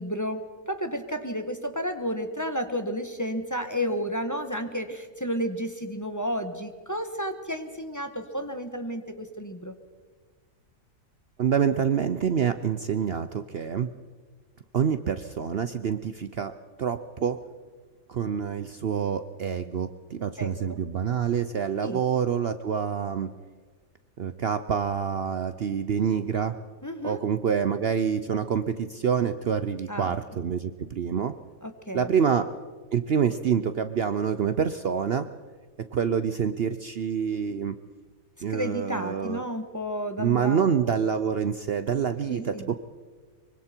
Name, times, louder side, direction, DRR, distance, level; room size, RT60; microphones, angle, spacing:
voice 1, 0.0-9.7 20.4-20.8 21.8-22.0 26.8-27.2 29.9-30.1 31.6-32.1 38.5-40.7 42.3-42.7, equal, 15° left, 6 dB, 1.3 m, -32 dB
voice 2, 11.4-13.9 14.7-16.5 16.8-17.4 18.1-23.3 24.2-26.6 27.0-31.3 31.9-32.5 32.9-35.3 35.8-37.8 38.4-39.4 40.2-42.8, right 7 dB, 55° right, 11 dB, 0.8 m, -27 dB
24.5 x 24.0 x 4.5 m, 1.5 s
omnidirectional pair, 1.4 m